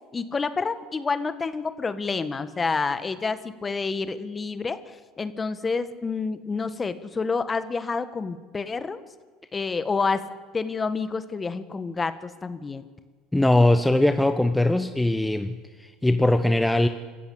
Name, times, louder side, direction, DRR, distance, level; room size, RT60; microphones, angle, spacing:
voice 1, 0.1-4.8 5.2-9.0 9.5-10.2 10.5-12.9, left 4 dB, 25° left, 12 dB, 1.6 m, -28 dB
voice 2, 13.3-16.9, left 1 dB, 5° left, 8 dB, 1.1 m, -21 dB
26.5 x 14.5 x 8.4 m, 1.5 s
hypercardioid pair, 75°, 0 cm